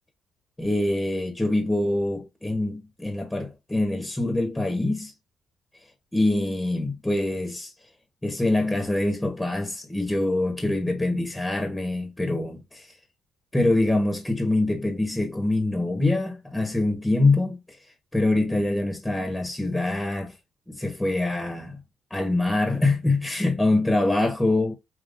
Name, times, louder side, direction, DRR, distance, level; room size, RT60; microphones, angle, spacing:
voice 1, 0.6-5.1 6.1-7.7 8.2-12.9 13.5-17.6 18.1-20.3 20.7-21.8 22.1-24.7, left 2 dB, 10° left, 1.2 m, -24 dB
5.4 x 2.8 x 2.6 m
cardioid pair, 90°, 0 cm